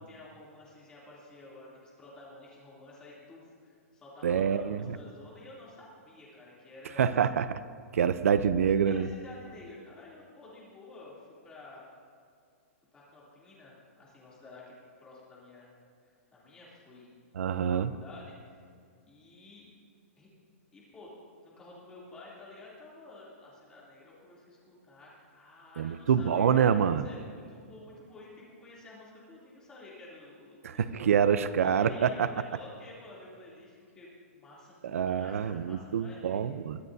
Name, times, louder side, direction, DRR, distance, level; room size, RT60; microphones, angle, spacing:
voice 1, 0.0-7.1 8.8-11.8 12.9-15.7 16.0-17.1 17.5-18.6 19.0-19.7 20.2-20.3 20.7-21.1 21.4-31.1 31.6-36.5, left 2 dB, 10° left, -6 dB, 2.8 m, -51 dB
voice 2, 4.2-4.8 7.0-7.5 7.9-9.1 17.4-17.9 25.8-27.1 30.6-32.1 34.8-36.8, right 8 dB, 75° right, 14 dB, 0.5 m, -26 dB
22.5 x 14.0 x 2.7 m, 2.2 s
hypercardioid pair, 175°, 8 cm